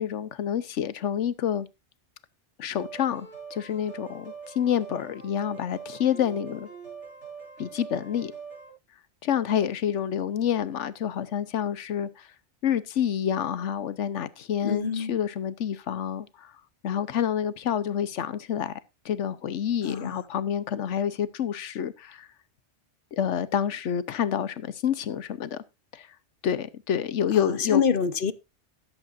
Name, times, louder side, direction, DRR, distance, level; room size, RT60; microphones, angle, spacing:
voice 1, 0.0-1.7 2.6-6.7 7.6-8.3 9.2-12.3 12.6-16.5 16.8-18.8 19.0-22.3 23.1-25.6 25.9-26.1 26.4-27.8, left 9 dB, 90° left, 1.2 m, -28 dB
sound 1, 2.8-8.7, right 6 dB, 85° right, 7.9 m, -43 dB
voice 2, 14.6-15.1 19.8-20.2 27.3-28.3, left 6 dB, 50° left, 0.9 m, -26 dB
13.5 x 11.5 x 2.5 m
omnidirectional pair, 1.2 m